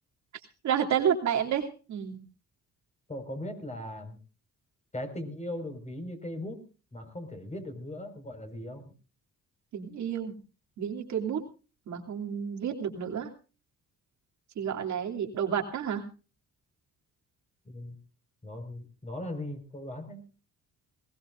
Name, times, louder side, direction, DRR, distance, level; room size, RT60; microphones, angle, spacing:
voice 1, 0.6-2.2 9.7-10.4 10.8-11.4 11.9-13.3 14.6-16.0, right 8 dB, 70° right, 2 dB, 3.0 m, -30 dB
voice 2, 3.1-4.2 4.9-6.6 6.9-8.9 17.7-18.0 18.4-20.2, left 1 dB, 25° left, 5 dB, 5.4 m, -38 dB
21.0 x 18.5 x 2.6 m, 0.34 s
cardioid pair, 90°, 30 cm